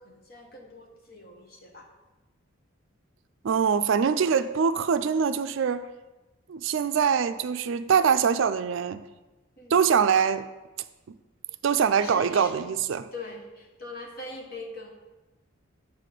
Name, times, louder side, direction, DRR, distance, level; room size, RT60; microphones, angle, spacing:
voice 1, 0.0-1.9 9.6-9.9 12.0-12.6 13.1-14.9, left 2 dB, 45° left, 1 dB, 1.2 m, -42 dB
voice 2, 3.4-5.9 6.5-9.0 9.7-10.5 11.6-13.1, right 6 dB, 65° right, 12 dB, 0.4 m, -23 dB
8.1 x 4.2 x 6.6 m, 1.1 s
head